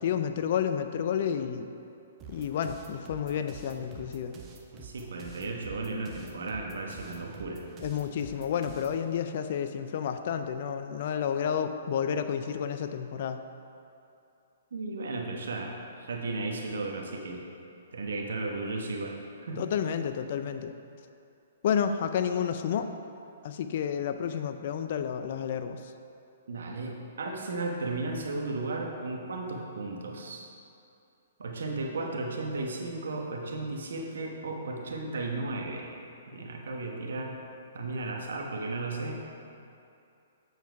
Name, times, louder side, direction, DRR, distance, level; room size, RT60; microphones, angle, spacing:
voice 1, 0.0-1.7 2.3-4.3 7.8-13.4 19.6-20.7 21.6-22.9 23.4-25.8, left 8 dB, 55° left, 9 dB, 0.4 m, -30 dB
sound 1, 2.2-9.0, right 4 dB, 25° right, 0.8 m, -48 dB
voice 2, 4.8-7.6 14.7-17.4 17.9-19.6 26.5-30.5 31.4-35.9 36.3-37.4 37.7-39.2, right 2 dB, 75° right, 1 dB, 1.1 m, -35 dB
8.1 x 4.7 x 4.5 m, 2.6 s
hypercardioid pair, 135°, 0 cm